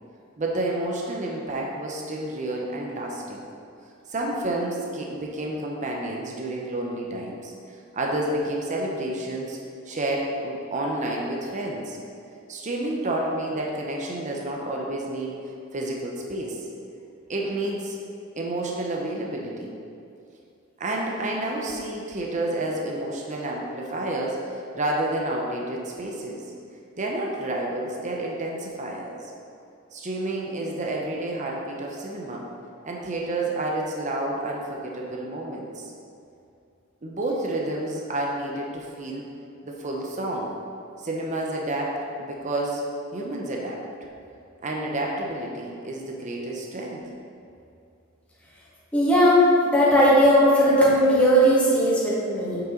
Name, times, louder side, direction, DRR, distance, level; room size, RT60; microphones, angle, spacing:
voice 1, 0.4-3.4 4.1-7.5 7.9-9.6 9.9-12.0 12.5-15.4 15.7-16.6 17.3-17.9 18.4-19.7 20.8-26.4 27.0-29.2 29.9-32.4 32.8-35.9 37.0-39.3 39.6-40.5 41.0-42.8 43.1-43.8 44.6-47.0, right 1 dB, 35° right, -1 dB, 0.8 m, -30 dB
voice 2, 48.9-52.6, equal, 5° left, -8 dB, 1.9 m, -18 dB
8.0 x 6.0 x 3.8 m, 2.6 s
head